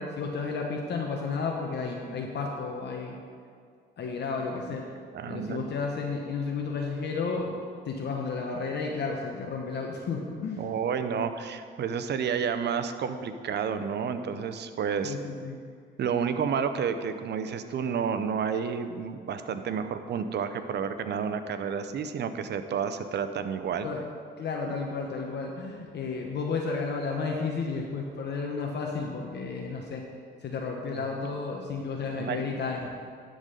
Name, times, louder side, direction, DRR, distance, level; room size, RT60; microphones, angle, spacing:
voice 1, 0.0-3.2 4.0-4.9 5.3-10.7 15.0-15.6 23.8-24.1 24.4-30.0 30.4-32.9, left 4 dB, 60° left, 0 dB, 1.0 m, -32 dB
voice 2, 5.1-5.7 10.6-15.1 16.0-23.9 30.9-31.1 32.0-32.4, right 7 dB, 60° right, 10 dB, 0.7 m, -30 dB
11.0 x 3.9 x 6.6 m, 2.1 s
cardioid pair, 90°, 20 cm